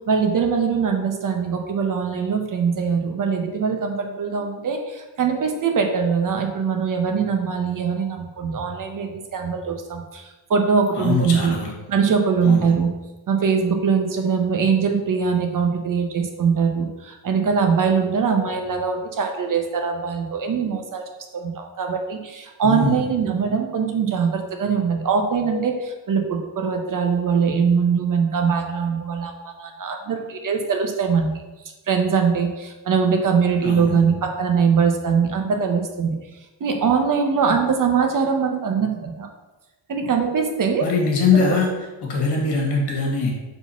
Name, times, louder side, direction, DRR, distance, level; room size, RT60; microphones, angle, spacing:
voice 1, 0.1-11.5 11.9-12.9 13.3-21.0 21.3-31.3 31.9-36.2 36.6-39.3 39.9-40.9 41.3-41.6, right 6 dB, 45° right, 4 dB, 0.8 m, -22 dB
voice 2, 11.0-11.7 12.4-12.7 22.6-23.0 33.6-34.0 40.8-41.7 42.0-43.3, left 4 dB, 60° left, 0 dB, 2.0 m, -22 dB
4.8 x 3.9 x 5.7 m, 1.1 s
cardioid pair, 140°, 46 cm